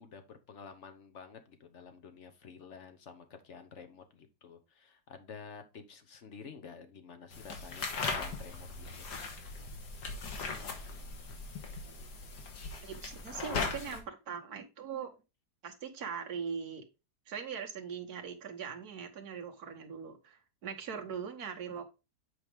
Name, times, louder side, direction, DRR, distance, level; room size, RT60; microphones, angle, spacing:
voice 1, 0.0-9.1, left 5 dB, 50° left, 1.3 m, -50 dB
sound 1, 7.3-14.0, left 4 dB, 90° left, 2.0 m, -39 dB
voice 2, 12.8-15.2 15.6-16.9 17.3-21.9, right 7 dB, 65° right, 1.7 m, -41 dB
8.0 x 5.0 x 3.5 m
omnidirectional pair, 1.7 m